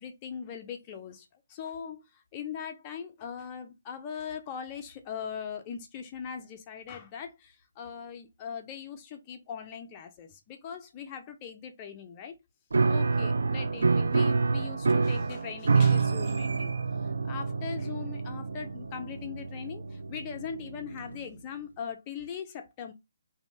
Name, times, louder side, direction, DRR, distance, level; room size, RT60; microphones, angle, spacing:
voice 1, 0.0-12.3 12.9-16.7 17.0-22.9, left 7 dB, 25° left, 0.4 m, -40 dB
Piano, 12.7-21.2, right 4 dB, 65° right, 0.3 m, -27 dB
2.8 x 2.0 x 3.1 m
figure-of-eight pair, 140°, 0 cm